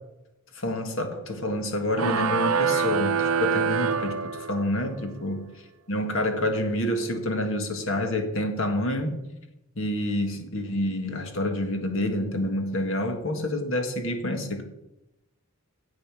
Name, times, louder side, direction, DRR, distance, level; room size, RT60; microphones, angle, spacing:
voice 1, 0.5-5.5 5.9-9.2 9.7-14.6, left 1 dB, 60° left, 6 dB, 1.8 m, -28 dB
sound 1, 1.9-4.8, right 6 dB, 75° right, 0.6 m, -25 dB
10.5 x 7.8 x 6.3 m, 0.92 s
head